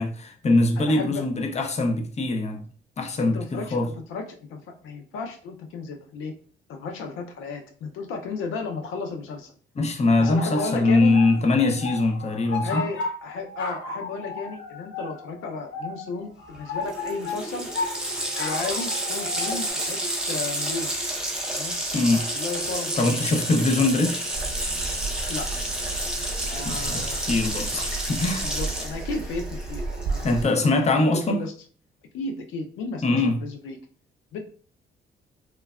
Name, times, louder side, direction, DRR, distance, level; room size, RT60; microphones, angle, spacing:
voice 1, 0.0-2.6 3.0-3.9 9.8-12.8 21.9-22.3 23.0-24.2 26.6-28.5 30.2-31.4 33.0-33.4, left 2 dB, 35° left, 0.6 m, -22 dB
voice 2, 0.8-1.3 3.2-4.2 4.5-6.3 6.7-9.5 10.2-11.2 12.6-17.7 18.4-20.0 20.3-20.9 21.5-21.8 22.2-23.3 23.6-23.7 25.3-25.5 26.5-27.2 28.4-30.4 30.8-31.5 32.1-33.8 34.3-34.4, left 4 dB, 85° left, 0.6 m, -34 dB
sound 1, 10.2-19.7, left 3 dB, 70° left, 1.1 m, -35 dB
Water tap faucet, 16.5-16.6 16.8-30.6, right 1 dB, 5° right, 0.7 m, -30 dB
sound 2, 24.3-30.4, right 3 dB, 45° right, 0.6 m, -33 dB
3.2 x 2.1 x 2.3 m
cardioid pair, 90°, 20 cm